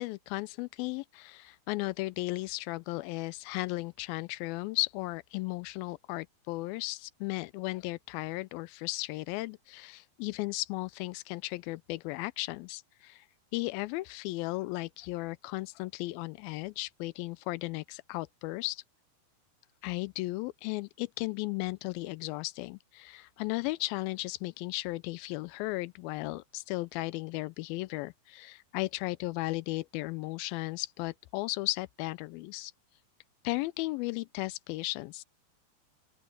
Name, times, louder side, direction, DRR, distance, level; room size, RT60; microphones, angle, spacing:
voice 1, 0.0-13.3 13.5-18.8 19.8-32.7 33.4-35.2, left 21 dB, 80° left, 2.3 m, -35 dB
open air
omnidirectional pair, 4.3 m